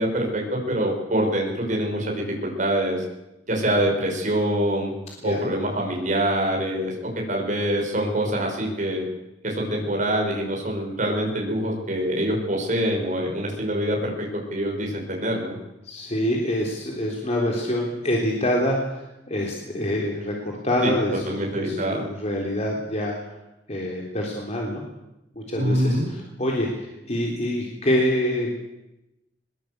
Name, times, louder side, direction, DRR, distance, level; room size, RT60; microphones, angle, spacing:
voice 1, 0.0-3.0 3.5-4.9 5.2-9.0 9.4-15.6 20.8-20.9 21.3-22.0 25.5-26.1, right 1 dB, 45° right, 0 dB, 6.1 m, -25 dB
voice 2, 15.8-23.2 23.7-24.8 25.3-28.6, left 1 dB, 40° left, -1 dB, 3.7 m, -26 dB
21.5 x 21.5 x 8.2 m, 0.94 s
head